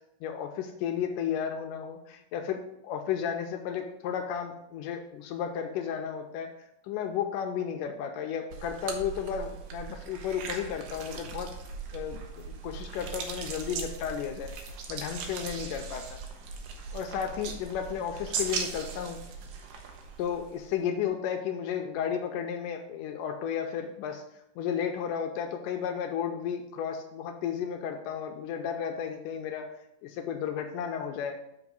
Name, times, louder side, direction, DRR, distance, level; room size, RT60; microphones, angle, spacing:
voice 1, 0.2-2.6 2.8-6.5 6.8-11.5 11.9-16.2 16.9-19.2 20.2-24.2 24.6-29.7 30.0-31.4, left 8 dB, 85° left, 5 dB, 1.9 m, -33 dB
sound 1, 8.5-20.7, right 5 dB, 70° right, 2.3 m, -39 dB
6.1 x 5.4 x 6.1 m, 0.82 s
omnidirectional pair, 4.3 m